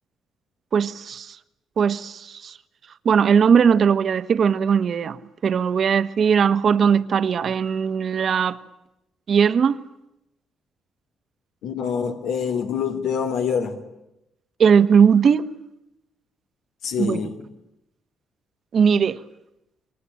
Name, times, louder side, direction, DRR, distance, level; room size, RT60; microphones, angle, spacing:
voice 1, 0.7-1.4 1.8-2.5 3.0-8.6 9.3-9.8 14.6-15.5 17.0-17.2 18.7-19.2, right 7 dB, 55° right, 1.5 m, -19 dB
voice 2, 11.6-13.8 16.8-17.3, left 7 dB, 85° left, 3.2 m, -25 dB
29.0 x 23.5 x 8.7 m
cardioid pair, 90°, 0 cm